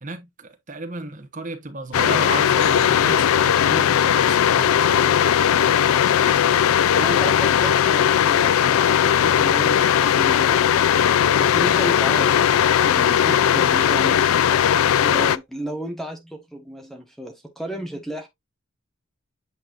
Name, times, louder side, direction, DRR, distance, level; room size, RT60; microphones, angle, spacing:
voice 1, 0.0-5.1, right 3 dB, 35° right, 1.1 m, -33 dB
sound 1, 1.9-15.4, left 9 dB, 75° left, 0.3 m, -18 dB
voice 2, 7.0-10.9 11.4-14.4 15.0-18.3, right 1 dB, ahead, 1.2 m, -33 dB
8.6 x 4.3 x 2.5 m
head